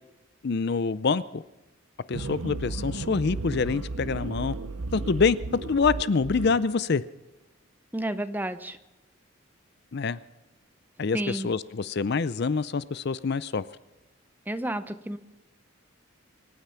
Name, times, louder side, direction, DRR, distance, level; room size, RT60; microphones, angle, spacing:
voice 1, 0.4-1.4 2.1-4.5 4.9-7.0 9.9-10.2 11.0-13.6, left 4 dB, 50° left, 17 dB, 0.5 m, -26 dB
sound 1, 2.1-6.6, right 3 dB, 70° right, 0.7 m, -34 dB
voice 2, 7.9-8.8 11.1-11.5 14.5-15.2, right 1 dB, 10° right, 12 dB, 0.6 m, -31 dB
25.0 x 9.6 x 5.8 m, 1.0 s
head